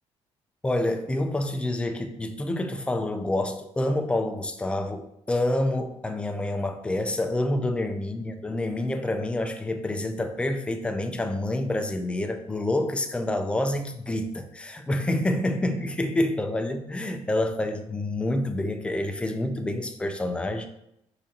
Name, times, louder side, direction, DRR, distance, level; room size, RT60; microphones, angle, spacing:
voice 1, 0.6-20.7, left 1 dB, 10° left, 6 dB, 0.4 m, -28 dB
4.9 x 3.8 x 2.8 m, 0.79 s
cardioid pair, 140°, 11 cm